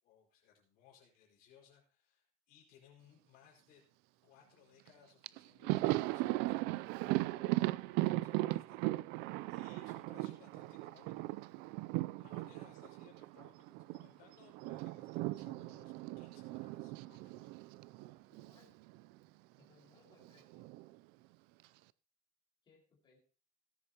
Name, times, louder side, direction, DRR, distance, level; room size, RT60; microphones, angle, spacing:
voice 1, 0.0-3.8 4.2-11.8 12.1-17.5, left 8 dB, 60° left, -1 dB, 5.2 m, -64 dB
Thunder, 4.9-5.0 5.2-14.1 14.3-18.6 18.9-19.1 20.2-20.9, right 19 dB, 70° right, 0.4 m, -37 dB
voice 2, 18.3-18.8 19.6-20.7 22.6-23.2, left 4 dB, 25° left, -3 dB, 5.1 m, -67 dB
18.5 x 10.0 x 2.9 m, 0.36 s
cardioid pair, 160°, 18 cm